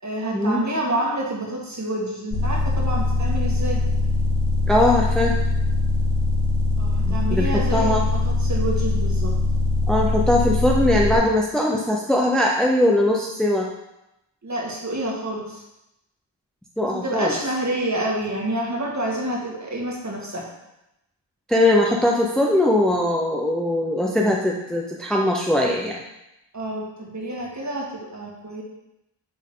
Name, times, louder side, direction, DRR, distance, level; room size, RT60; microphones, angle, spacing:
voice 1, 0.0-3.8 6.8-9.3 14.4-15.6 16.9-20.4 26.5-28.6, right 1 dB, 35° right, -2 dB, 1.9 m, -28 dB
sound 1, 2.3-11.2, left 2 dB, 60° left, 2.5 m, -22 dB
voice 2, 4.7-5.4 7.1-8.0 9.9-13.7 16.8-17.3 21.5-26.0, left 1 dB, ahead, -1 dB, 0.7 m, -20 dB
9.1 x 3.6 x 3.8 m, 0.89 s
cardioid pair, 70°, 47 cm